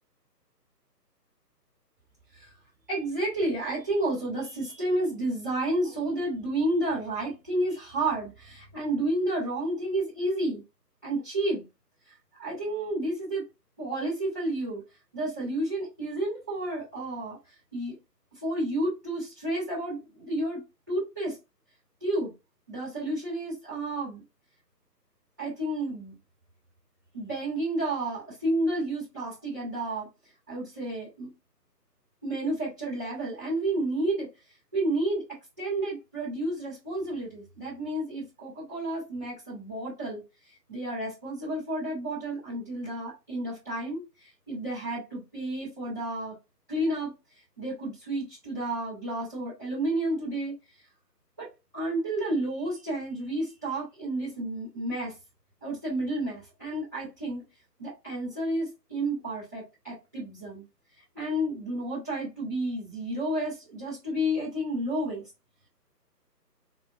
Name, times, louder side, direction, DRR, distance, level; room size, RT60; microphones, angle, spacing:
voice 1, 2.9-10.6 11.0-11.6 12.4-13.5 13.8-14.8 15.1-17.4 17.7-18.0 18.4-20.6 20.9-21.4 22.0-22.3 22.7-24.2 25.4-26.1 27.1-30.1 30.5-31.3 32.2-34.3 34.7-40.2 40.7-46.3 46.7-47.1 47.6-50.6 51.4-51.5 51.7-55.1 55.6-57.4 57.8-60.6 61.1-65.2, right 1 dB, 10° right, 0.9 m, -31 dB
3.5 x 2.2 x 2.3 m
figure-of-eight pair, 150°, 50 cm